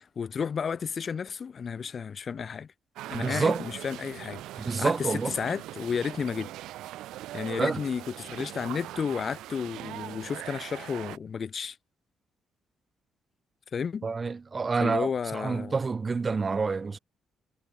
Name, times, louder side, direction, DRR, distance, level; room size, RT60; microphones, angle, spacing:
voice 1, 0.0-2.7 3.1-6.5 7.3-11.8 13.7-14.1 14.8-15.7, left 6 dB, 45° left, 0.8 m, -32 dB
sound 1, 3.0-11.2, right 15 dB, 90° right, 0.9 m, -41 dB
voice 2, 3.1-3.6 4.6-5.3 7.6-7.8 14.0-17.0, right 4 dB, 30° right, 1.3 m, -28 dB
cardioid pair, 90°, 0 cm